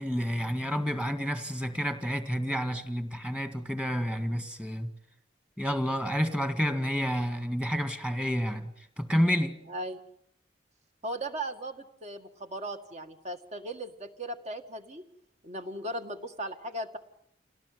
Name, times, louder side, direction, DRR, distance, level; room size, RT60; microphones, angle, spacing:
voice 1, 0.0-4.9 5.6-8.7 9.0-9.6, equal, 5° right, 1.9 m, -29 dB
voice 2, 9.7-10.0 11.0-15.0 15.4-17.0, right 1 dB, 40° right, 2.0 m, -37 dB
27.0 x 18.0 x 9.5 m
head